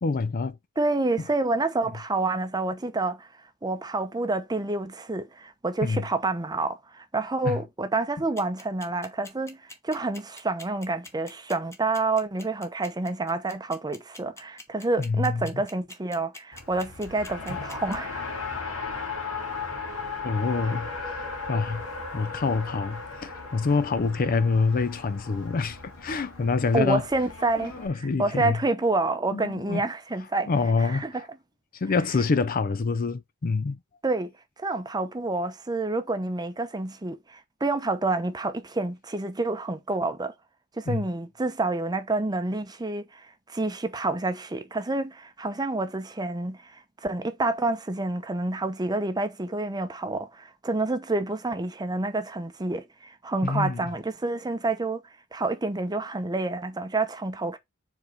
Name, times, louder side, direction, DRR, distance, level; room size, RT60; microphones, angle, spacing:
voice 1, 0.0-0.6 5.8-6.1 7.4-7.6 15.0-15.6 20.2-21.9 22.1-27.0 27.6-28.6 29.3-29.8 30.5-31.0 31.7-33.8 40.9-41.1 53.4-53.9, left 4 dB, 40° left, 0.5 m, -26 dB
voice 2, 0.8-3.3 3.6-9.6 9.8-18.2 26.7-27.7 28.2-30.5 30.8-31.2 34.0-34.3 34.6-40.3 40.8-55.0 55.3-57.6, right 2 dB, 20° right, 0.7 m, -28 dB
sound 1, 8.4-18.0, left 2 dB, 15° left, 1.0 m, -44 dB
Race car auto racing, 16.5-27.9, left 4 dB, 70° left, 2.6 m, -36 dB
4.9 x 3.7 x 5.4 m
head